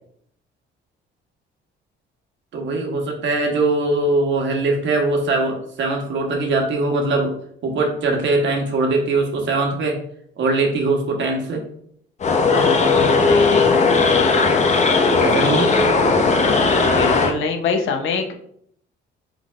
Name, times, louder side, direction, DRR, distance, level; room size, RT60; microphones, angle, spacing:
voice 1, 2.5-7.3 7.6-10.0 10.4-11.6 15.2-15.7, right 2 dB, 70° right, 2 dB, 1.1 m, -21 dB
sound 1, 12.2-17.3, left 4 dB, 35° left, 0.6 m, -16 dB
voice 2, 13.2-13.7 16.9-18.3, left 5 dB, 80° left, 4 dB, 0.7 m, -24 dB
4.5 x 3.9 x 2.4 m, 0.68 s
cardioid pair, 90°, 20 cm